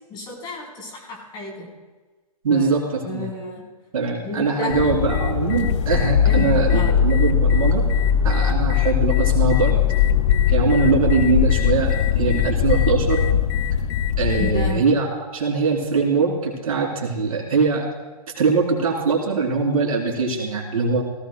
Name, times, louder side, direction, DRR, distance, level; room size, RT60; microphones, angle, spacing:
voice 1, 0.1-1.7 2.5-3.6 4.2-4.7 6.2-7.0 14.4-14.9, left 2 dB, 20° left, -1 dB, 3.9 m, -31 dB
voice 2, 2.4-2.8 3.1-3.2 3.9-7.8 8.2-9.8 10.5-13.3 14.2-15.1 15.3-17.9 18.4-21.0, right 4 dB, 65° right, -1 dB, 3.6 m, -22 dB
sound 1, 4.7-14.7, left 8 dB, 45° left, 0.6 m, -20 dB
17.5 x 16.0 x 2.2 m, 1.3 s
hypercardioid pair, 135°, 20 cm